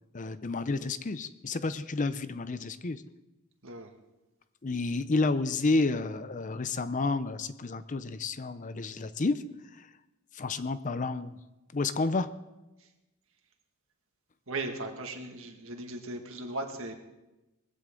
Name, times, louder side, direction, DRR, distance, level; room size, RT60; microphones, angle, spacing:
voice 1, 0.1-3.0 4.6-9.4 9.7-9.9 10.3-11.4 11.7-12.3, left 3 dB, 35° left, 13 dB, 0.5 m, -30 dB
voice 2, 3.6-4.0 12.8-12.9 14.5-16.9, right 2 dB, 60° right, 4 dB, 1.9 m, -37 dB
20.5 x 15.5 x 3.8 m, 1.0 s
head